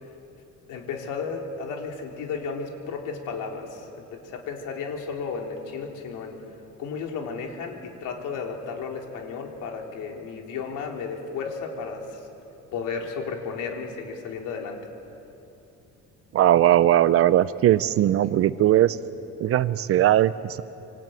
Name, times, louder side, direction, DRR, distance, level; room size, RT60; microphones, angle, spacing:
voice 1, 0.7-6.4 6.8-12.2 12.7-14.8, left 5 dB, 70° left, 1 dB, 4.0 m, -33 dB
voice 2, 16.3-19.0 19.4-20.6, right 12 dB, 45° right, 15 dB, 0.6 m, -19 dB
26.0 x 25.0 x 9.2 m, 2.9 s
cardioid pair, 175°, 31 cm